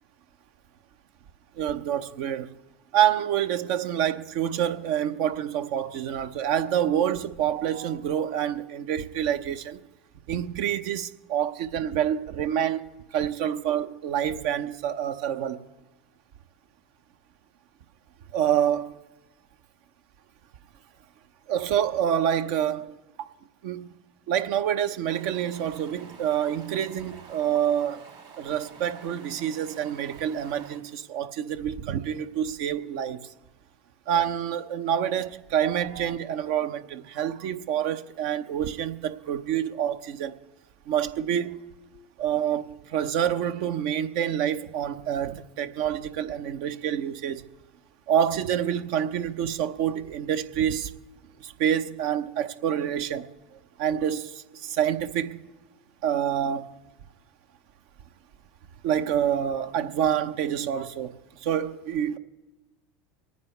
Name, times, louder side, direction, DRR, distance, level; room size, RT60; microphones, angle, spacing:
voice 1, 1.6-2.6 2.9-9.8 10.3-12.8 13.1-15.6 18.3-18.9 21.5-23.3 23.6-24.0 24.3-28.0 28.4-33.3 34.1-40.3 40.9-41.6 42.2-47.4 48.1-50.9 51.4-53.3 53.8-55.4 56.0-56.7 58.8-62.2, right 9 dB, 65° right, 0.8 m, -27 dB
Stream, 25.0-30.8, right 6 dB, 90° right, 4.9 m, -48 dB
25.5 x 9.6 x 3.3 m
hypercardioid pair, 80°, 0 cm